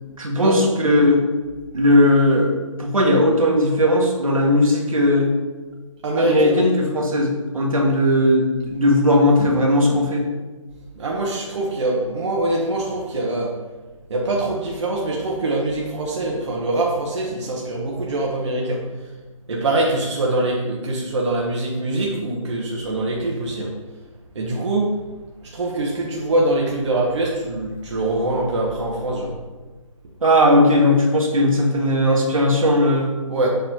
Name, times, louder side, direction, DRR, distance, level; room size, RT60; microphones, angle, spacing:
voice 1, 0.2-1.2 1.7-5.3 6.2-10.3 30.2-33.1, left 1 dB, 80° right, -1 dB, 1.6 m, -17 dB
voice 2, 6.0-6.7 8.7-8.8 11.0-13.5 14.1-18.8 19.5-23.7 24.3-24.9 25.4-29.3 33.3-33.5, right 2 dB, 60° right, -2 dB, 1.0 m, -23 dB
6.7 x 3.2 x 4.5 m, 1.3 s
figure-of-eight pair, 140°, 17 cm